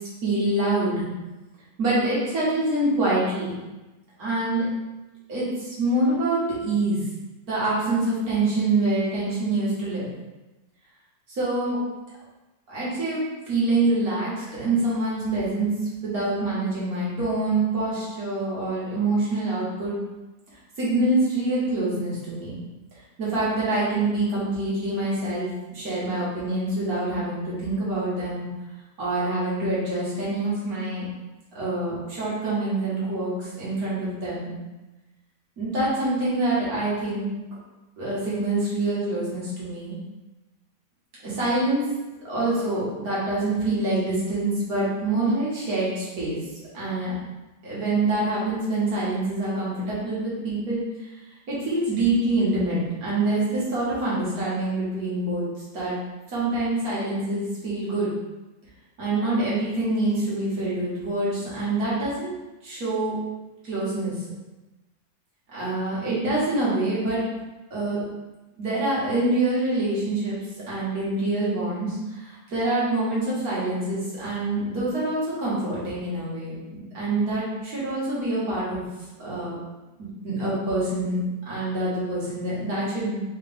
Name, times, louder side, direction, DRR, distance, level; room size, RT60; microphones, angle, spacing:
voice 1, 0.2-1.1 1.8-3.5 4.2-4.7 5.3-7.0 7.4-10.1 11.3-11.8 12.7-15.7 16.0-19.9 20.8-22.5 23.2-28.4 29.0-31.1 31.5-34.5 35.6-37.2 38.0-39.9 41.2-41.8 42.2-46.4 46.7-47.1 47.6-50.8 51.5-55.5 55.7-56.0 56.3-58.1 59.0-62.3 62.6-63.2 63.6-64.1 65.5-67.2 67.7-68.0 68.6-70.4 70.7-78.8 79.2-79.6 80.2-81.2 81.5-83.2, right 2 dB, 50° right, -8 dB, 1.9 m, -25 dB
3.9 x 3.3 x 3.4 m, 1.1 s
omnidirectional pair, 2.2 m